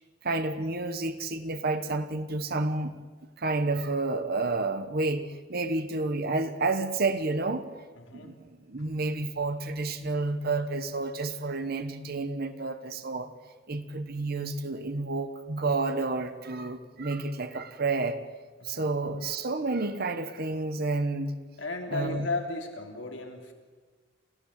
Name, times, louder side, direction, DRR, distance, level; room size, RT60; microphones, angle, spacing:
voice 1, 0.2-3.0 3.4-7.8 8.1-13.3 13.7-18.2 18.6-21.4 21.9-22.3, right 3 dB, 55° right, 9 dB, 1.2 m, -30 dB
voice 2, 8.0-8.3 18.6-18.9 21.6-23.5, left 3 dB, 90° left, 3 dB, 3.2 m, -35 dB
28.0 x 14.5 x 8.3 m, 1.4 s
head